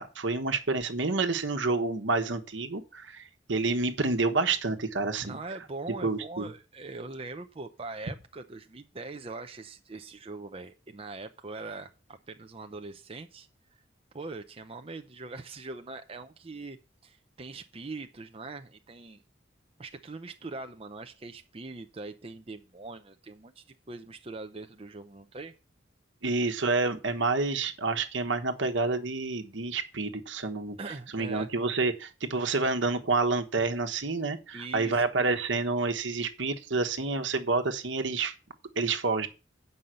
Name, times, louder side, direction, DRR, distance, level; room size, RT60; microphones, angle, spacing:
voice 1, 0.0-5.4 6.0-6.5 26.2-30.8 31.1-38.3 38.8-39.3, right 3 dB, 75° right, 1.3 m, -28 dB
voice 2, 5.2-13.8 14.1-16.8 17.0-19.2 19.8-25.5 30.8-31.5 34.5-35.0, right 3 dB, 30° right, 0.6 m, -42 dB
8.2 x 5.6 x 7.6 m
head